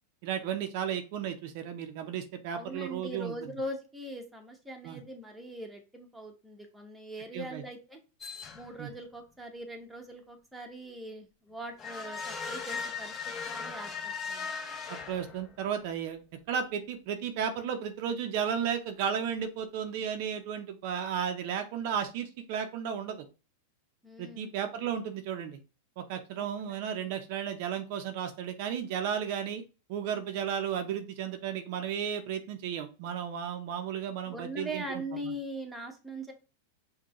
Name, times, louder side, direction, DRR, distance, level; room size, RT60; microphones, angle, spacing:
voice 1, 0.2-3.5 4.8-5.0 7.3-7.6 8.8-8.9 14.9-16.2 16.5-23.2 24.2-25.6 26.0-29.6 29.9-35.3, right 8 dB, 55° right, 7 dB, 0.5 m, -34 dB
voice 2, 2.5-8.0 8.5-13.2 13.5-14.5 24.0-24.5 26.4-26.8 34.2-36.3, right 1 dB, 5° right, 1 dB, 0.9 m, -41 dB
sound 1, 8.2-8.9 11.8-15.7, left 5 dB, 25° left, 0.7 m, -38 dB
5.2 x 2.2 x 2.9 m, 0.33 s
hypercardioid pair, 120°, 0 cm